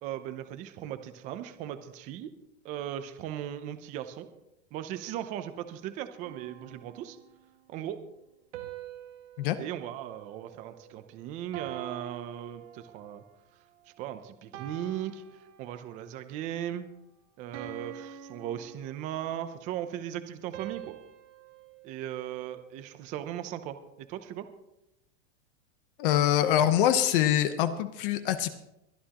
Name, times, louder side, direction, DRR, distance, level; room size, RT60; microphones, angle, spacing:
voice 1, 0.0-2.3 2.6-4.3 4.7-7.2 7.7-8.0 9.6-13.2 14.0-15.2 15.6-16.9 17.4-21.0 21.8-24.5, right 11 dB, 20° right, 10 dB, 0.5 m, -37 dB
sound 1, 6.2-7.6 8.5-11.0 11.5-13.3 13.8-14.1 14.5-16.1 16.6-16.8 17.5-19.4 20.5-22.9, right 10 dB, 90° right, 1.8 m, -46 dB
voice 2, 26.0-28.5, left 11 dB, 50° left, 10 dB, 0.9 m, -24 dB
22.5 x 11.0 x 2.9 m, 0.85 s
supercardioid pair, 170°, 35 cm